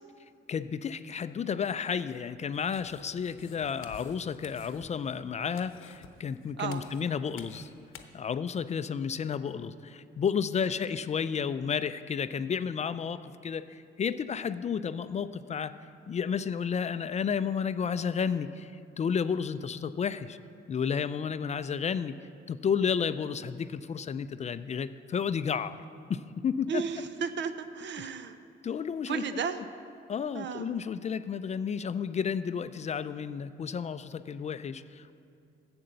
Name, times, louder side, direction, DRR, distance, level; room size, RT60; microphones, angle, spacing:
voice 1, 0.5-7.7 8.1-15.8 16.1-18.7 19.0-20.4 20.7-22.2 22.5-25.8 26.1-26.8 28.0-28.1 28.6-29.4 30.1-35.2, left 7 dB, 35° left, 13 dB, 0.4 m, -32 dB
sound 1, 2.5-8.0, left 7 dB, 85° left, 0.8 m, -52 dB
voice 2, 26.7-28.4 29.1-29.6 30.3-30.7, right 6 dB, 65° right, 11 dB, 0.7 m, -34 dB
11.0 x 7.9 x 6.5 m, 2.5 s
cardioid pair, 90°, 20 cm